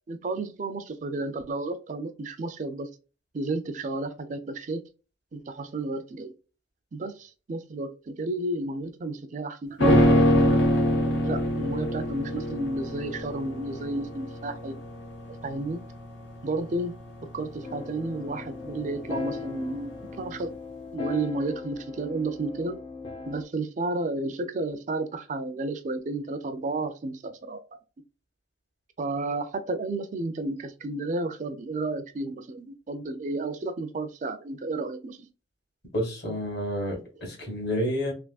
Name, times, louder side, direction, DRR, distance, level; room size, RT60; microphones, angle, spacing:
voice 1, 0.1-2.9 3.3-4.8 5.3-6.3 6.9-14.7 15.4-15.8 16.4-16.9 17.3-20.5 20.9-22.8 23.3-27.6 29.0-35.2, right 2 dB, 45° right, 0.4 m, -32 dB
sound 1, 9.8-19.2 19.5-19.6, equal, 80° left, 1.2 m, -25 dB
sound 2, 17.6-23.4, left 4 dB, 25° left, 0.5 m, -38 dB
voice 2, 35.9-38.1, equal, 60° left, 1.6 m, -29 dB
3.4 x 2.9 x 2.3 m
head